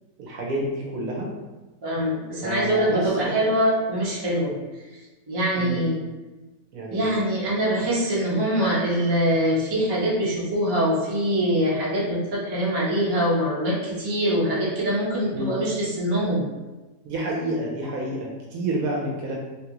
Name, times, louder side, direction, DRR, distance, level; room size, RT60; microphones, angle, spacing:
voice 1, 0.2-1.3 2.4-3.4 5.5-5.8 6.7-7.1 15.3-15.5 17.0-19.4, right 1 dB, 70° right, -2 dB, 1.0 m, -29 dB
voice 2, 1.8-4.6 5.3-5.9 6.9-16.4, equal, 25° right, -7 dB, 0.5 m, -23 dB
3.2 x 2.4 x 2.9 m, 1.2 s
omnidirectional pair, 1.7 m